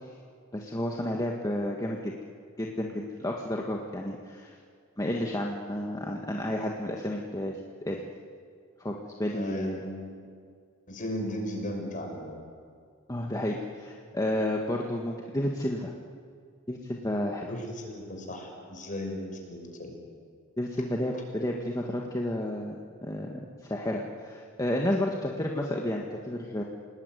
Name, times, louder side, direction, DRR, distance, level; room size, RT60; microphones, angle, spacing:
voice 1, 0.5-2.1 2.6-4.6 5.0-8.0 8.8-9.8 13.1-15.9 16.7-17.5 20.6-26.6, left 1 dB, 15° left, 0 dB, 1.7 m, -31 dB
voice 2, 9.3-10.2 10.9-12.4 17.5-19.9 21.1-21.2, left 1 dB, 40° left, 2 dB, 6.0 m, -36 dB
29.0 x 19.5 x 9.4 m, 2.2 s
head